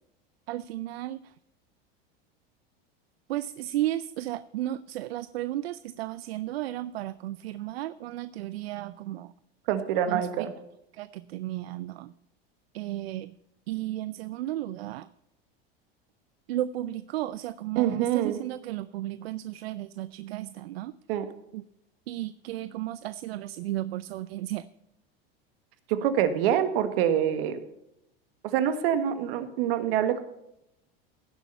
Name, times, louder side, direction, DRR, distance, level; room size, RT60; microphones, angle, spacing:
voice 1, 0.5-1.3 3.3-9.3 10.1-10.5 10.9-12.1 12.7-13.3 13.7-15.1 16.5-20.9 21.5-21.6 22.1-24.7, right 14 dB, 85° right, 15 dB, 0.5 m, -34 dB
voice 2, 9.7-10.5 17.7-18.4 21.1-21.3 25.9-27.6 28.4-30.2, right 10 dB, 70° right, 10 dB, 1.6 m, -25 dB
16.0 x 6.9 x 5.6 m, 0.82 s
hypercardioid pair, 105°, 30 cm